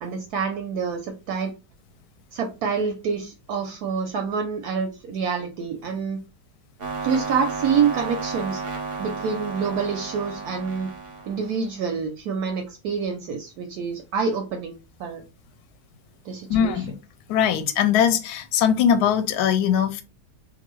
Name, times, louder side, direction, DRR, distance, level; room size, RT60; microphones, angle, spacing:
voice 1, 0.0-1.5 2.3-6.2 7.0-8.6 9.0-10.9 11.3-15.2 16.3-16.8, right 6 dB, 70° right, 1.0 m, -27 dB
sound 1, 6.8-11.7, right 4 dB, 50° right, 0.7 m, -33 dB
voice 2, 16.5-17.0 17.3-20.0, left 8 dB, 70° left, 1.0 m, -21 dB
2.6 x 2.6 x 3.0 m
omnidirectional pair, 1.8 m